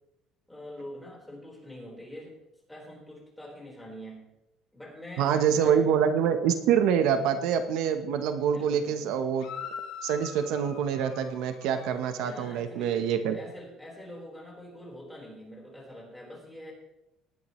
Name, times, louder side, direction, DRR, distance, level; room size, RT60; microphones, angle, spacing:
voice 1, 0.5-2.4 2.7-4.3 4.7-6.1 6.9-7.2 8.5-9.1 12.2-13.0 13.3-16.7, equal, 5° left, -2 dB, 4.2 m, -44 dB
voice 2, 5.2-9.5 10.0-13.4, right 8 dB, 75° right, 8 dB, 0.9 m, -26 dB
sound 1, 9.4-12.7, left 7 dB, 70° left, 2.3 m, -43 dB
18.5 x 10.5 x 3.1 m, 0.88 s
cardioid pair, 150°, 0 cm